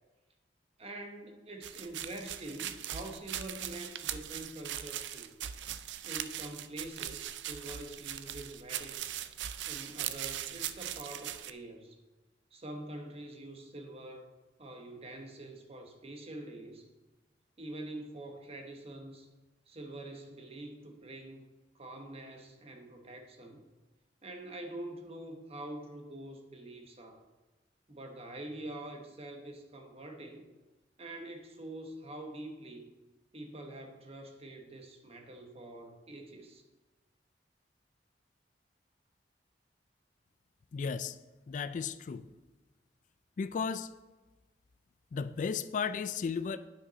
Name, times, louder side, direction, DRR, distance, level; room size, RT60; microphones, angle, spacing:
voice 1, 0.8-5.3 6.0-9.2 9.7-12.0 12.5-14.3 14.6-16.8 17.6-19.3 19.7-23.6 24.2-27.2 27.9-30.4 31.0-32.9 33.3-36.6, right 1 dB, 35° right, 4 dB, 1.1 m, -45 dB
sound 1, 1.6-11.5, right 11 dB, 80° right, 0.4 m, -40 dB
voice 2, 40.7-41.2 41.5-42.3 43.4-43.9 45.1-46.6, left 6 dB, 45° left, 13 dB, 0.3 m, -34 dB
9.7 x 6.0 x 4.0 m, 1.2 s
head